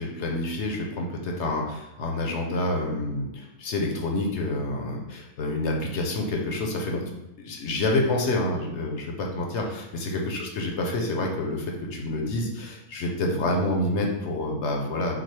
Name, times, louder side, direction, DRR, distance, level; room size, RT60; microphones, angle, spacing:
voice 1, 0.0-7.1 7.4-11.7 11.9-15.2, left 2 dB, 60° left, 1 dB, 0.8 m, -28 dB
5.9 x 2.1 x 3.2 m, 0.91 s
omnidirectional pair, 1.5 m